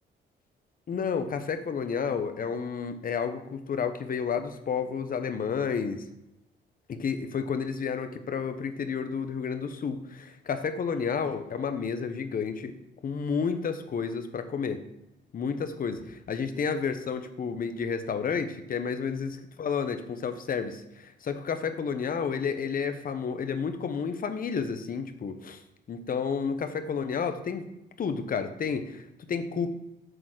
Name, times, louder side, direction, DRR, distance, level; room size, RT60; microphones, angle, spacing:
voice 1, 0.9-6.0 6.9-12.7 13.0-14.8 15.3-25.6 25.9-27.6 28.0-29.7, left 6 dB, 45° left, 9 dB, 0.9 m, -31 dB
7.7 x 4.1 x 6.4 m, 0.89 s
cardioid pair, 90°, 20 cm